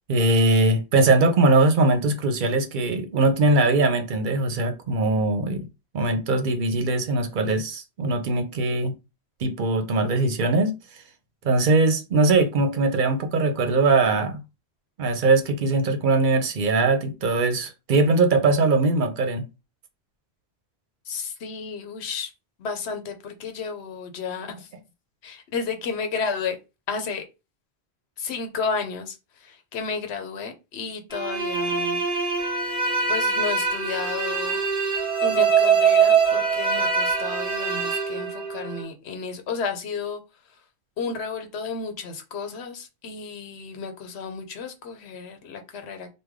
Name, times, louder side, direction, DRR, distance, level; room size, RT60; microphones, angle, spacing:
voice 1, 0.1-5.7 5.9-8.9 9.4-10.7 11.4-14.4 15.0-19.5, right 2 dB, 55° right, 0.7 m, -21 dB
voice 2, 21.1-22.3 22.6-24.7 25.2-26.6 26.9-27.2 28.2-32.0 32.6-32.8 33.1-34.6 35.2-40.2 41.0-46.1, left 5 dB, 85° left, 1.0 m, -32 dB
sound 1, 31.1-38.8, right 5 dB, 5° right, 1.4 m, -23 dB
3.2 x 2.2 x 3.5 m
omnidirectional pair, 1.1 m